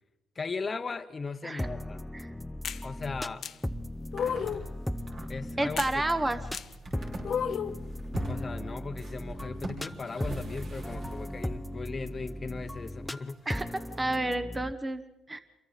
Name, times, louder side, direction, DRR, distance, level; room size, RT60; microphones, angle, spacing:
voice 1, 0.3-2.0 2.8-3.5 5.3-6.0 8.3-13.5, left 4 dB, 35° left, 7 dB, 1.0 m, -37 dB
sound 1, 1.6-14.7, left 1 dB, 5° left, 0.7 m, -37 dB
sound 2, 2.6-2.8 3.4-3.5 4.1-4.7 5.8-5.9 6.5-6.7 7.2-7.8, left 8 dB, 60° left, 0.7 m, -32 dB
sound 3, 3.7-3.8 4.0-11.6 12.6-12.7 13.3-13.4 13.9-14.0, right 2 dB, 55° right, 5.5 m, -43 dB
voice 2, 5.6-6.4 13.5-13.7 14.0-15.0 15.3-15.4, right 2 dB, 20° right, 11 dB, 1.1 m, -30 dB
28.0 x 23.0 x 4.1 m, 1.0 s
cardioid pair, 90°, 0 cm